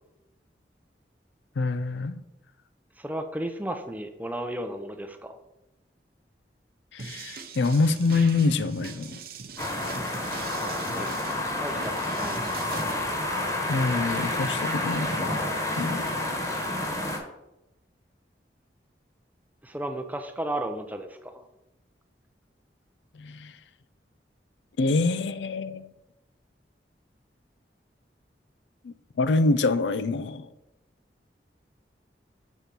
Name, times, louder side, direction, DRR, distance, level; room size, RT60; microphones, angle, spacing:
voice 1, 1.6-2.2 6.9-9.2 13.7-15.3 15.8-16.1 23.1-23.5 24.8-25.9 28.8-30.5, left 3 dB, 90° left, 13 dB, 0.5 m, -26 dB
voice 2, 3.0-5.4 10.9-11.3 11.6-12.6 19.6-21.5, right 1 dB, 10° right, 7 dB, 0.6 m, -34 dB
sound 1, 7.0-12.9, right 4 dB, 55° right, 0.7 m, -41 dB
sound 2, 9.6-17.2, left 1 dB, 15° left, 1.3 m, -29 dB
6.3 x 4.3 x 5.2 m, 0.91 s
head